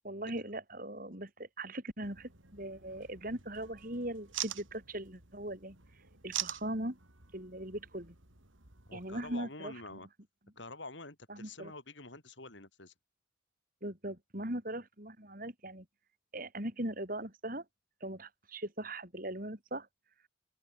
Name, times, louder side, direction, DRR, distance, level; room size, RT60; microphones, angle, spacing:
voice 1, 0.0-5.8 6.2-7.0 7.3-8.2 8.9-9.7 11.3-11.7 13.8-15.9 16.3-17.6 18.0-19.9, right 1 dB, 45° right, 5.7 m, -40 dB
sound 1, 2.0-9.4, right 12 dB, 85° right, 4.4 m, -45 dB
voice 2, 8.9-10.1 10.6-12.9, left 2 dB, 70° left, 6.1 m, -47 dB
open air
head